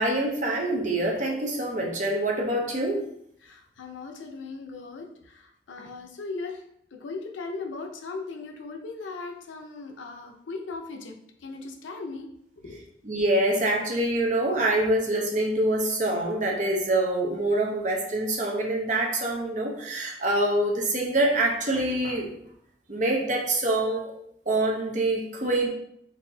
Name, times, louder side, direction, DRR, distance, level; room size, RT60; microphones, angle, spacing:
voice 1, 0.0-3.0 13.0-22.3 22.9-24.1 24.5-25.7, right 1 dB, 40° right, 0 dB, 0.7 m, -25 dB
voice 2, 3.4-6.6 6.9-11.1 11.4-12.3 12.6-12.9, left 3 dB, 90° left, 3 dB, 0.6 m, -38 dB
4.0 x 3.4 x 2.7 m, 0.71 s
head